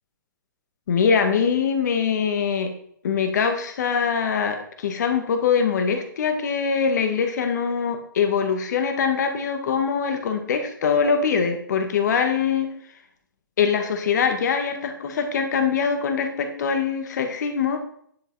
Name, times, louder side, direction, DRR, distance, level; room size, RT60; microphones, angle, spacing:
voice 1, 0.9-2.7 3.0-12.7 13.6-17.8, left 6 dB, 55° left, 6 dB, 1.8 m, -23 dB
10.5 x 7.5 x 4.2 m, 0.65 s
figure-of-eight pair, 120°, 11 cm